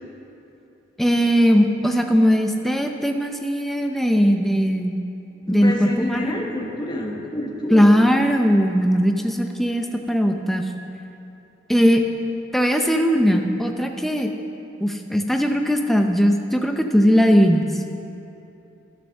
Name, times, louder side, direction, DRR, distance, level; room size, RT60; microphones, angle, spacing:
voice 1, 1.0-5.0 5.5-6.3 7.7-10.7 11.7-12.0 12.5-14.3 14.8-17.7, equal, ahead, 3 dB, 0.6 m, -19 dB
voice 2, 5.4-8.0, left 1 dB, 25° left, -1 dB, 1.2 m, -28 dB
12.0 x 6.8 x 6.5 m, 2.9 s
head